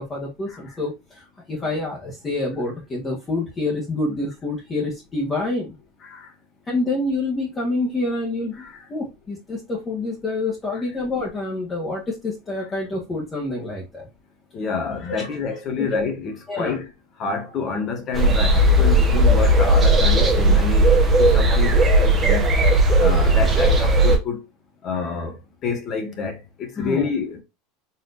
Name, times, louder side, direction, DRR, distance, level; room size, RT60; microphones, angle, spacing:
voice 1, 0.0-5.7 6.7-8.6 8.9-14.1 15.1-15.3 15.8-16.0 16.5-16.8 26.8-27.1, left 2 dB, 20° left, 1.4 m, -27 dB
voice 2, 6.0-6.3 8.5-8.9 10.7-10.8 14.5-16.9 17.2-22.5 23.0-24.4 24.8-25.4 25.6-27.4, left 5 dB, 35° left, 1.4 m, -28 dB
sound 1, 18.1-24.2, right 1 dB, 20° right, 1.2 m, -16 dB
4.2 x 3.5 x 2.6 m
supercardioid pair, 140°, 0 cm